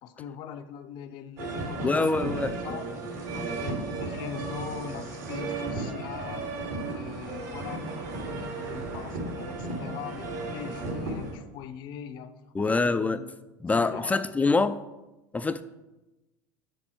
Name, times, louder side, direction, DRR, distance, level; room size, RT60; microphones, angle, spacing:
voice 1, 0.0-6.5 6.9-13.3 13.7-14.7, left 8 dB, 55° left, 0.6 m, -42 dB
sound 1, 1.4-11.3, right 3 dB, 70° right, 2.3 m, -34 dB
voice 2, 1.8-2.6 12.5-13.3 13.6-14.8 15.3-15.6, left 3 dB, 15° left, 0.4 m, -25 dB
6.7 x 6.4 x 4.5 m
hypercardioid pair, 85°, 10 cm